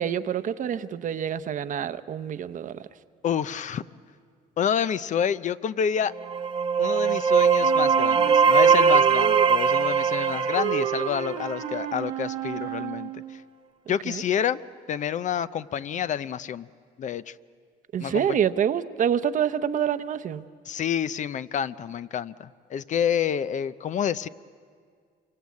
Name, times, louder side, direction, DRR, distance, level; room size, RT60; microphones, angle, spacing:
voice 1, 0.0-2.7 14.1-14.2 17.9-20.4, right 9 dB, 50° right, 12 dB, 0.9 m, -26 dB
voice 2, 3.2-3.8 4.6-6.1 6.8-13.1 13.9-14.6 14.9-16.7 17.0-17.3 18.0-18.4 20.7-24.3, left 8 dB, 45° left, 14 dB, 0.6 m, -28 dB
sound 1, 6.1-11.8, right 6 dB, 30° right, 1.3 m, -21 dB
Wind instrument woodwind instrument, 7.6-13.4, right 12 dB, 75° right, 1.1 m, -32 dB
27.0 x 25.0 x 8.4 m, 2.1 s
cardioid pair, 110°, 17 cm